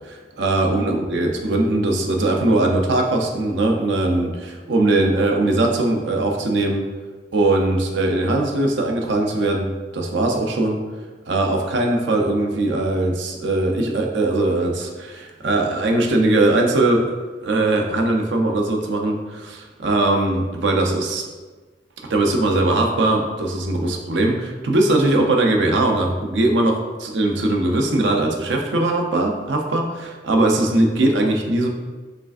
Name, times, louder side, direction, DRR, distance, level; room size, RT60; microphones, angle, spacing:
voice 1, 0.4-4.3 4.7-6.8 7.3-9.7 9.9-10.8 11.3-14.9 15.4-17.0 17.4-19.2 19.8-21.2 22.1-24.3 24.6-31.7, right 2 dB, 70° right, 2 dB, 0.6 m, -20 dB
5.0 x 3.2 x 2.4 m, 1.3 s
head